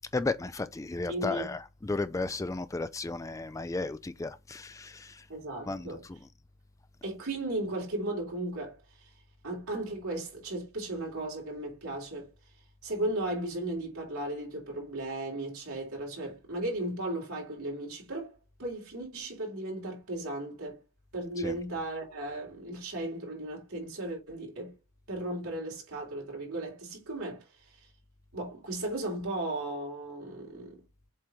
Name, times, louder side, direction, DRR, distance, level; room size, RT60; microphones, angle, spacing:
voice 1, 0.1-5.2 5.7-6.2 21.4-21.6, left 3 dB, 15° left, 0.3 m, -34 dB
voice 2, 1.1-1.5 5.3-6.0 7.0-8.8 9.4-12.3 12.8-20.8 21.1-24.7 25.1-27.5 28.3-30.8, right 1 dB, 80° right, 3.8 m, -36 dB
7.6 x 3.0 x 4.9 m
head